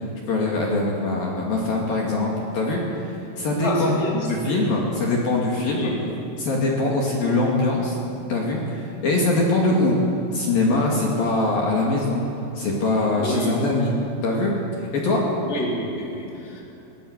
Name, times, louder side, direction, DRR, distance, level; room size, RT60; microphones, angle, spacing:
voice 1, 0.3-2.8 3.4-5.9 6.4-8.0 8.3-10.0 10.3-12.2 12.6-13.9 14.2-14.5 14.9-15.3, left 2 dB, 55° left, -2 dB, 3.8 m, -22 dB
voice 2, 3.6-4.3 5.7-6.0 13.1-13.6 15.4-16.6, left 1 dB, 15° left, -3 dB, 3.5 m, -28 dB
21.0 x 20.5 x 8.2 m, 2.9 s
omnidirectional pair, 5.5 m